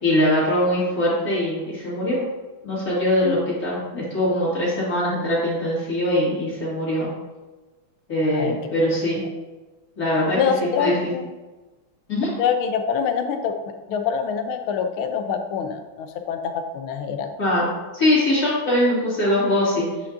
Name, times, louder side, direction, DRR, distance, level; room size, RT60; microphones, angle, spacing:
voice 1, 0.0-2.2 2.6-7.1 8.1-9.2 10.0-10.4 10.8-11.1 12.1-12.3 17.4-19.8, left 1 dB, 45° left, -9 dB, 2.7 m, -22 dB
voice 2, 8.2-8.6 9.2-9.3 10.3-11.2 12.4-13.5 13.9-17.3, left 7 dB, 80° left, 6 dB, 1.5 m, -25 dB
8.3 x 5.0 x 2.5 m, 1.2 s
omnidirectional pair, 2.3 m